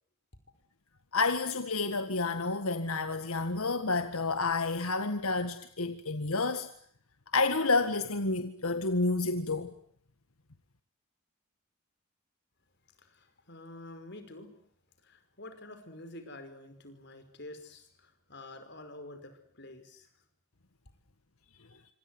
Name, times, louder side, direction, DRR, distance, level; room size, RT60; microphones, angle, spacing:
voice 1, 1.1-6.7 7.3-9.7, left 3 dB, 80° left, 1.8 m, -29 dB
voice 2, 13.0-14.5 15.0-20.1, left 2 dB, 50° left, 5.4 m, -48 dB
27.0 x 26.0 x 7.9 m
head